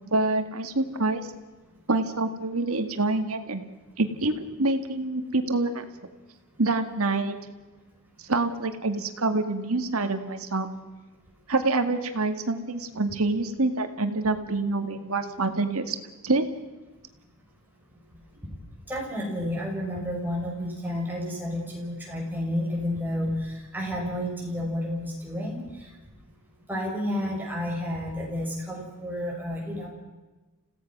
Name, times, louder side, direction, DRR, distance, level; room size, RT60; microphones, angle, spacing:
voice 1, 0.1-1.3 1.9-3.6 4.0-5.8 6.6-7.4 8.2-10.7 11.5-16.0 16.2-16.5, right 2 dB, 75° right, 8 dB, 2.0 m, -26 dB
voice 2, 18.9-25.6 26.7-29.9, left 1 dB, 10° right, -2 dB, 6.1 m, -31 dB
29.5 x 17.0 x 6.1 m, 1.2 s
head